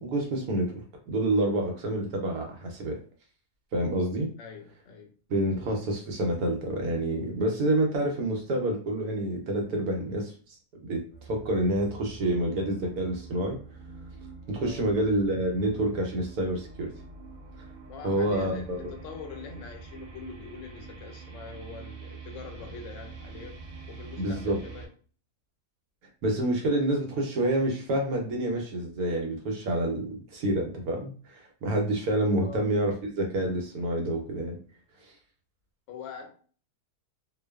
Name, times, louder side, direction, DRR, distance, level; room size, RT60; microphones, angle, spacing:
voice 1, 0.0-3.0 3.7-4.3 5.3-10.3 10.9-11.0 11.3-13.6 14.5-16.9 18.0-18.8 24.2-24.6 26.2-34.6, right 1 dB, 75° right, 1 dB, 1.1 m, -28 dB
voice 2, 4.4-5.1 14.6-14.9 17.9-24.9 32.4-32.6 35.9-36.3, left 5 dB, 65° left, 3 dB, 0.8 m, -44 dB
sound 1, 11.1-24.9, right 4 dB, 60° right, 0.6 m, -45 dB
2.5 x 2.2 x 2.2 m, 0.40 s
omnidirectional pair, 1.6 m